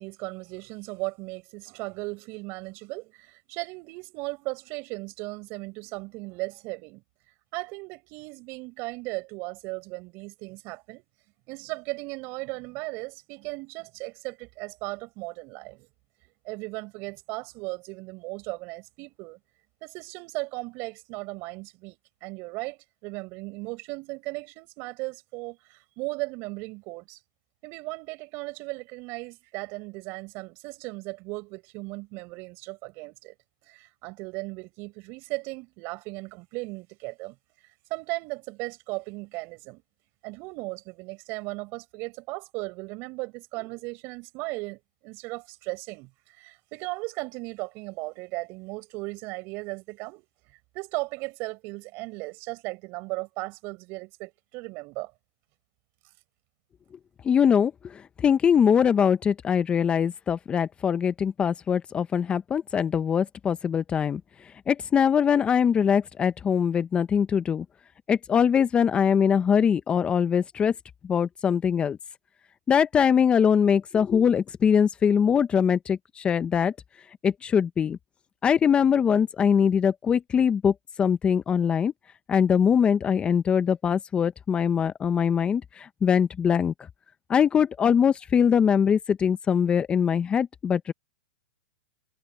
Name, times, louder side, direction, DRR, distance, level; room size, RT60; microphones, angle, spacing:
voice 1, 0.0-7.0 7.5-11.0 11.5-15.9 16.4-19.4 19.8-27.2 27.6-33.3 33.6-37.4 37.9-39.8 40.2-50.2 50.7-55.1, right 25 dB, 40° right, 6.6 m, -36 dB
voice 2, 57.2-67.6 68.1-70.7 71.0-72.0 72.7-76.7 77.2-78.0 78.4-81.9 82.3-86.7 87.3-90.9, left 7 dB, 20° left, 0.8 m, -22 dB
hypercardioid pair, 125°, 6 cm